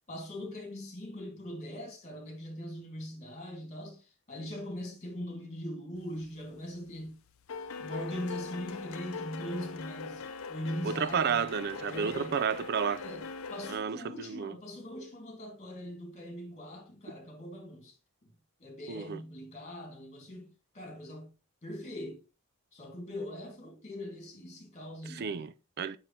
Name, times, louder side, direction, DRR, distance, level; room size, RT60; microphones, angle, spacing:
voice 1, 0.1-7.2 7.6-12.4 13.0-18.0 18.2-18.3 18.6-21.3 21.6-22.2 22.7-25.4, left 1 dB, 35° left, 2.1 m, -41 dB
sound 1, 6.2-6.6 6.9-13.7, left 4 dB, 70° left, 0.5 m, -41 dB
voice 2, 10.8-13.0 13.7-14.5 18.9-19.2 25.1-26.0, right 6 dB, 50° right, 0.4 m, -32 dB
6.9 x 5.6 x 2.9 m
head